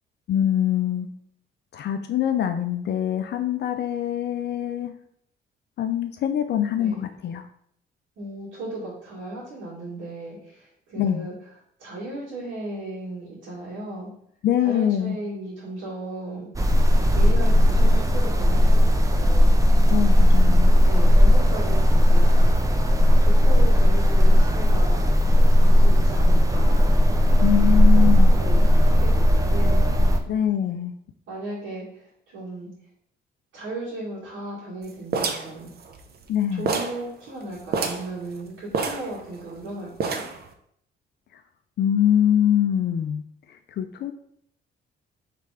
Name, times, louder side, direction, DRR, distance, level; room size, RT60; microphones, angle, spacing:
voice 1, 0.3-1.1 1.7-4.9 5.8-7.4 11.0-11.3 14.4-15.2 19.9-20.7 27.4-28.3 30.3-30.9 36.3-36.7 41.8-43.2 43.8-44.1, left 10 dB, 60° left, 7 dB, 0.4 m, -23 dB
voice 2, 6.7-7.0 8.2-11.3 11.8-14.1 14.6-16.7 17.1-19.5 20.8-22.6 23.0-25.0 25.6-27.0 27.8-29.8 31.3-32.0 32.3-32.7 33.5-35.7 36.5-40.2, right 2 dB, 75° right, -10 dB, 1.8 m, -36 dB
sound 1, 16.6-30.2, equal, 15° right, 0.5 m, -16 dB
sound 2, 35.1-36.3 36.7-37.0 37.3-37.4 37.7-38.1 38.7-39.6 40.0-40.5, right 5 dB, 55° right, 0.6 m, -27 dB
3.3 x 3.3 x 4.9 m, 0.69 s
cardioid pair, 90°, 20 cm